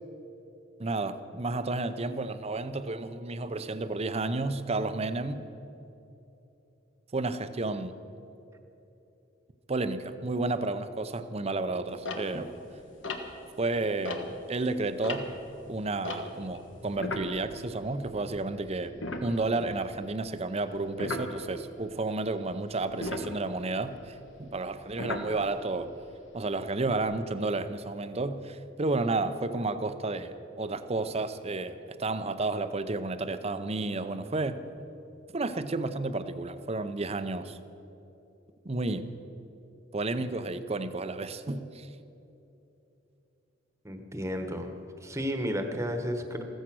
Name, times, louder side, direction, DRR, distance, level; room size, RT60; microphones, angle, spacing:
voice 1, 0.8-5.5 7.1-8.0 9.7-12.6 13.6-15.3 15.7-25.9 26.3-34.6 35.3-37.6 38.6-39.1 39.9-41.9, right 2 dB, 35° right, 11 dB, 0.7 m, -31 dB
sound 1, 12.0-14.6 14.9-18.4 18.7-18.8 19.0-19.9 21.0-21.3 22.9-25.8 26.4-27.0, left 2 dB, 85° left, 1.4 m, -37 dB
voice 2, 43.8-46.4, equal, 15° right, 6 dB, 1.2 m, -33 dB
15.0 x 14.5 x 6.2 m, 3.0 s
head